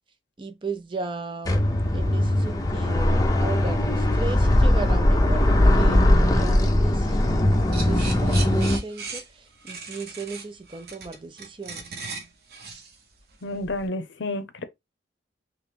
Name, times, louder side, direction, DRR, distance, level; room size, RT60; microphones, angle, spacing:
voice 1, 0.4-7.4 7.7-11.9, right 3 dB, 25° right, 0.4 m, -36 dB
sound 1, 1.4-8.8, left 1 dB, 20° left, 0.6 m, -20 dB
sound 2, 7.7-13.9, right 4 dB, 55° right, 0.8 m, -38 dB
voice 2, 13.4-14.6, left 2 dB, 80° left, 0.7 m, -30 dB
3.1 x 3.1 x 3.4 m
head